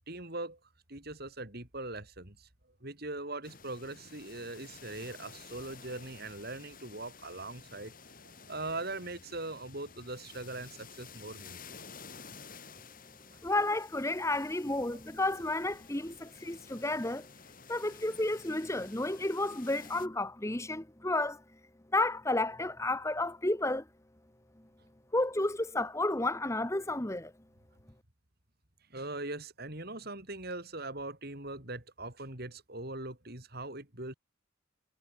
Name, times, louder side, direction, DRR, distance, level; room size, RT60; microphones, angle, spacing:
voice 1, 0.1-0.6 0.9-2.5 2.8-7.9 8.2-11.9 14.9-15.0 28.9-34.1, right 2 dB, 45° right, 3.9 m, -41 dB
sound 1, 3.4-20.1, left 5 dB, 40° left, 5.4 m, -52 dB
voice 2, 13.4-17.3 17.7-21.4 21.9-23.8 25.1-27.3, left 2 dB, 15° left, 1.1 m, -31 dB
head